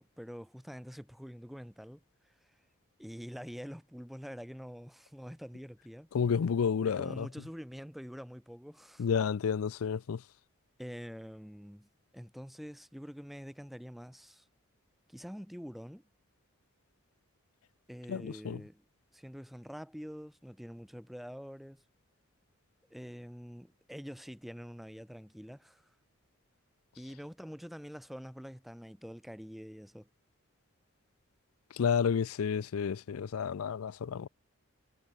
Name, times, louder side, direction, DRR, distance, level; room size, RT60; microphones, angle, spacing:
voice 1, 0.0-2.0 2.3-2.4 3.0-6.1 6.8-9.1 10.8-14.5 15.1-16.0 17.9-18.8 19.1-21.8 22.9-25.9 26.9-30.1, equal, ahead, 0.6 m, -46 dB
voice 2, 6.1-7.3 9.0-10.2 18.1-18.6 31.7-34.3, left 6 dB, 80° left, 0.4 m, -30 dB
head